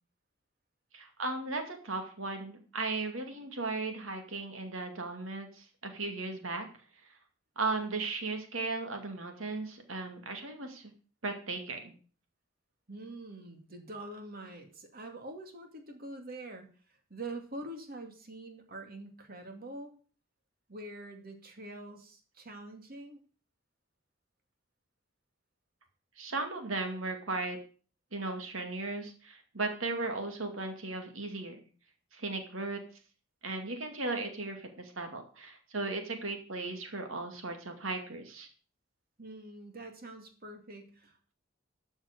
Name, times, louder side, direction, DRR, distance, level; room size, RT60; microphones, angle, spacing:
voice 1, 0.9-6.7 7.6-10.9 11.2-11.9 26.2-27.6 28.1-31.7 32.1-32.8 33.4-38.5, right 3 dB, 80° right, 5 dB, 2.3 m, -36 dB
voice 2, 12.9-19.9 20.7-23.2 39.2-41.3, right 2 dB, 45° right, 4 dB, 2.4 m, -45 dB
13.0 x 6.3 x 6.6 m, 0.40 s
head